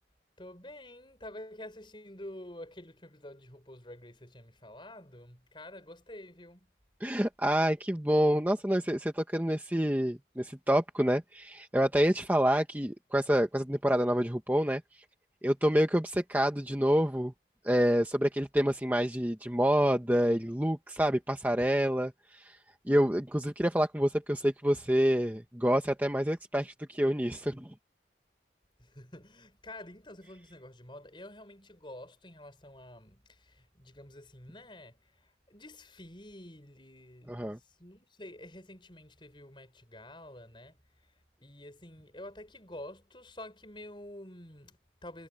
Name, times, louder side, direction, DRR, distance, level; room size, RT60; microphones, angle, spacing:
voice 1, 0.4-6.7 28.8-40.8 41.4-45.3, left 1 dB, 25° left, 5.7 m, -48 dB
voice 2, 7.0-14.8 15.4-17.3 17.6-22.6 22.9-27.7 37.3-37.6, equal, 10° right, 1.2 m, -27 dB
head